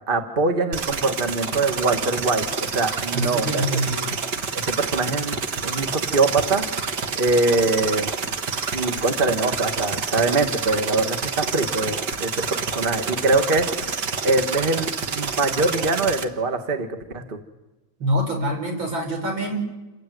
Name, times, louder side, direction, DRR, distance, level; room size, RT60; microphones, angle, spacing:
voice 1, 0.1-3.6 4.7-5.4 5.6-6.6 7.2-8.1 8.7-16.9 17.1-17.4, right 3 dB, 30° right, 7 dB, 1.7 m, -23 dB
sound 1, 0.7-16.2, right 5 dB, 60° right, 2.0 m, -28 dB
voice 2, 3.1-4.1 18.0-19.6, equal, 80° right, 2 dB, 6.2 m, -25 dB
28.5 x 15.5 x 9.3 m, 1.1 s
omnidirectional pair, 2.1 m